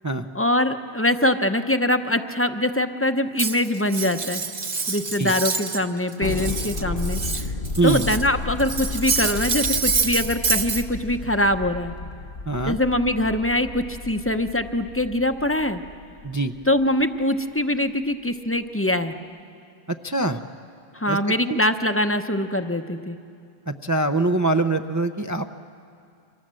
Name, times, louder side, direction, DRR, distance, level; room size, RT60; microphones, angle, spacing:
voice 1, 0.3-4.4 4.9-7.5 7.8-11.9 12.7-15.8 16.7-19.1 20.9-23.2, left 1 dB, 15° left, 7 dB, 0.8 m, -23 dB
Cutlery silverware, 3.4-5.8 6.1-8.3 8.6-10.8, right 5 dB, 40° right, 1.1 m, -26 dB
Thunder, 6.2-16.9, left 3 dB, 55° left, 1.1 m, -33 dB
voice 2, 12.5-12.8 16.2-16.5 19.9-20.4 21.1-21.2 21.5-21.6 23.7-25.5, right 2 dB, 25° right, 7 dB, 0.5 m, -23 dB
29.5 x 26.0 x 7.6 m, 2.4 s
omnidirectional pair, 1.1 m